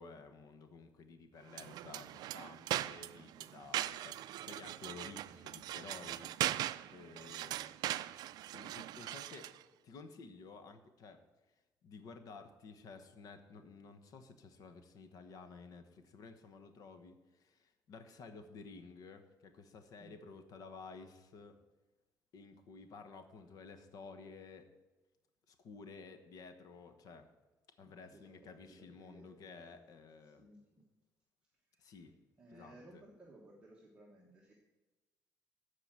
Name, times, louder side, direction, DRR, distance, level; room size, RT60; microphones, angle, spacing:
voice 1, 0.0-6.3 6.9-7.7 8.5-9.5 9.8-11.2 11.8-21.6 22.3-24.7 25.5-27.3 27.8-30.5 31.8-32.2 32.5-33.0, left 4 dB, 60° left, 8 dB, 1.1 m, -53 dB
sound 1, 1.5-9.6, right 14 dB, 75° right, 0.3 m, -40 dB
voice 2, 27.8-29.7 30.2-30.9 31.8-32.0 32.4-34.5, right 1 dB, 15° right, -4 dB, 1.3 m, -59 dB
14.0 x 5.0 x 7.5 m, 1.1 s
cardioid pair, 180°, 7 cm